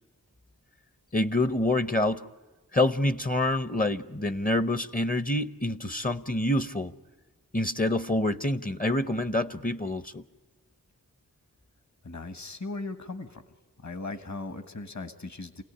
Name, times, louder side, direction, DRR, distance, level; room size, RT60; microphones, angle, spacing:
voice 1, 1.1-2.2 2.7-6.9 7.5-10.2, left 1 dB, 25° left, 13 dB, 0.7 m, -27 dB
voice 2, 12.0-13.4 13.8-15.6, left 3 dB, 50° left, 9 dB, 1.5 m, -38 dB
28.0 x 17.5 x 9.9 m, 1.2 s
wide cardioid pair, 40°, 36 cm